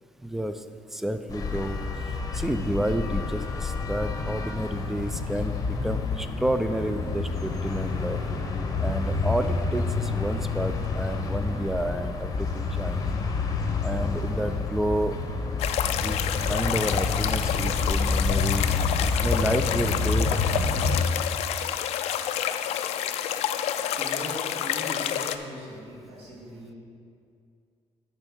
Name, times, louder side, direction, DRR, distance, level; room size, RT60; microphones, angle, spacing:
voice 1, 0.2-0.6 0.9-1.8 2.3-8.2 8.8-13.0 13.8-15.2 15.9-16.2 16.5-18.7 19.2-20.4, right 1 dB, 5° right, 9 dB, 0.3 m, -30 dB
sound 1, 1.3-21.0, left 4 dB, 35° left, 0.8 m, -28 dB
sound 2, 15.6-25.4, left 10 dB, 85° left, 0.4 m, -29 dB
voice 2, 24.0-26.7, right 1 dB, 70° right, -5 dB, 2.2 m, -40 dB
9.7 x 4.6 x 6.1 m, 2.4 s
cardioid pair, 165°, 11 cm